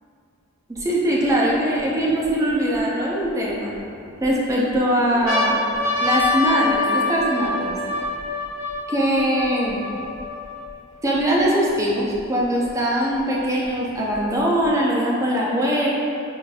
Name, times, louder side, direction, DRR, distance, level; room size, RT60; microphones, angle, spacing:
voice 1, 0.7-3.7 4.2-5.5 6.0-7.8 8.9-9.8 11.0-15.9, equal, 15° right, -5 dB, 0.4 m, -21 dB
sound 1, 0.8-0.9 1.5-2.8 3.5-4.3 4.7-4.8 5.1-10.7 11.4-11.5 11.7-12.7 13.6-14.7, left 2 dB, 75° left, 1.0 m, -26 dB
4.8 x 2.5 x 2.3 m, 2.5 s
head